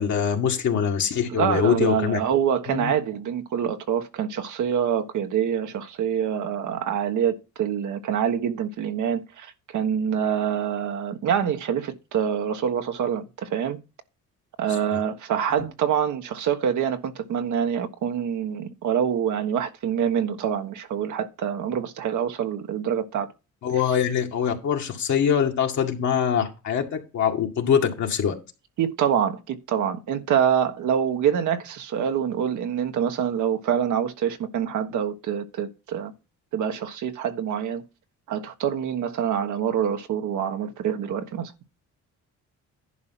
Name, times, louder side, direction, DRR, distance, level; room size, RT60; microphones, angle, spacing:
voice 1, 0.0-2.2 2.7-2.9 14.9-15.0 23.6-28.3, left 8 dB, 70° left, 2.2 m, -23 dB
voice 2, 1.4-13.8 14.6-23.3 28.8-36.1 36.5-37.8 38.3-41.5, right 8 dB, 80° right, 1.4 m, -26 dB
11.0 x 4.4 x 5.9 m
cardioid pair, 90°, 30 cm